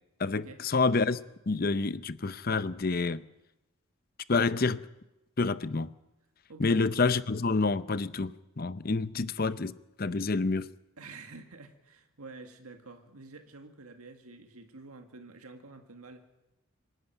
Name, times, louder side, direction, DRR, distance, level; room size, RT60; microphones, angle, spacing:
voice 1, 0.2-1.2 1.5-3.2 4.3-4.9 5.4-5.9 6.6-9.7 10.0-10.7, left 3 dB, 40° left, 0.6 m, -28 dB
voice 2, 6.5-6.8 11.0-16.2, right 3 dB, 90° right, 1.9 m, -49 dB
25.5 x 11.5 x 9.0 m
head